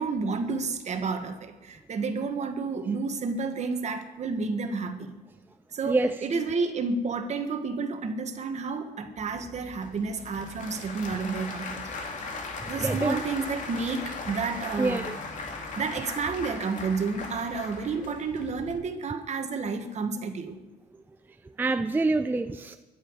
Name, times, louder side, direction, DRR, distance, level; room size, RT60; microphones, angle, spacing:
voice 1, 0.0-5.1 5.7-11.9 12.7-15.0 15.8-20.6, right 4 dB, 40° right, 7 dB, 1.7 m, -31 dB
voice 2, 5.8-6.3 12.6-13.2 14.8-15.2 21.6-22.8, right 2 dB, 10° right, 9 dB, 0.5 m, -26 dB
Applause / Crowd, 9.2-18.7, left 3 dB, 45° left, 2.6 m, -38 dB
23.0 x 10.5 x 4.8 m, 1.1 s
cardioid pair, 110°, 17 cm